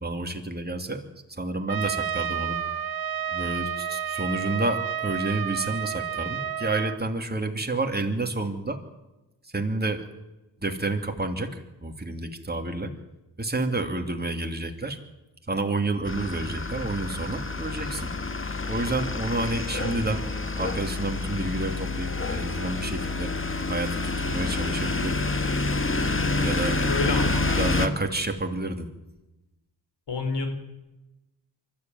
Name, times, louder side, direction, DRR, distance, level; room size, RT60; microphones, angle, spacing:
voice 1, 0.0-1.0 1.3-2.6 3.3-8.8 9.5-10.0 10.6-12.9 13.4-15.0 15.5-18.1 18.7-20.2 20.6-23.3 23.7-25.2 26.4-26.8 27.5-28.9, right 2 dB, 20° right, 4 dB, 2.8 m, -29 dB
Trumpet, 1.7-7.0, right 9 dB, 55° right, 0.9 m, -30 dB
sound 1, 16.1-27.9, left 3 dB, 30° left, 1.7 m, -28 dB
voice 2, 26.8-27.5 30.1-30.5, left 3 dB, 70° left, 6 dB, 4.1 m, -28 dB
24.0 x 13.5 x 9.3 m, 1.0 s
cardioid pair, 70°, 44 cm